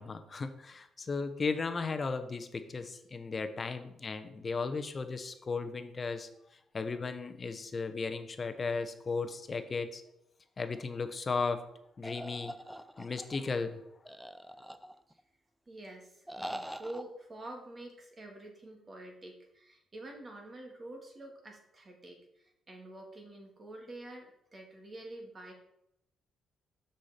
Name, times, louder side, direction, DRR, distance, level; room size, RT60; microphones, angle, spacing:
voice 1, 0.0-6.3 6.7-10.0 10.6-11.6 12.0-12.5 13.0-13.8, left 4 dB, 35° left, 9 dB, 0.8 m, -35 dB
sound 1, 12.0-13.4 14.1-15.2 16.3-17.0, equal, 5° right, 0.4 m, -43 dB
voice 2, 15.7-25.5, right 1 dB, 35° right, 2 dB, 2.0 m, -47 dB
6.3 x 5.6 x 4.2 m, 0.78 s
cardioid pair, 90°, 0 cm